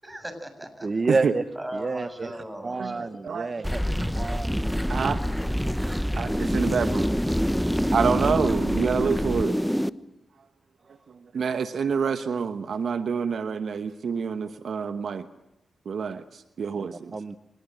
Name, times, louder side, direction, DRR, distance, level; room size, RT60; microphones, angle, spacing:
voice 1, 0.0-0.9 1.6-3.3, right 1 dB, 15° right, 7 dB, 7.2 m, -38 dB
voice 2, 0.8-1.4 1.7-2.3 2.6-3.8 4.1-4.6 16.9-17.4, right 3 dB, 45° right, 12 dB, 1.0 m, -29 dB
voice 3, 2.8-4.1 4.9-5.2 6.1-7.1 7.9-9.6 11.3-15.2 15.9-17.1, right 6 dB, 70° right, 10 dB, 1.1 m, -27 dB
sound 1, 3.6-9.9, equal, ahead, 1.0 m, -26 dB
25.0 x 20.0 x 7.8 m, 0.88 s
supercardioid pair, 45°, 0 cm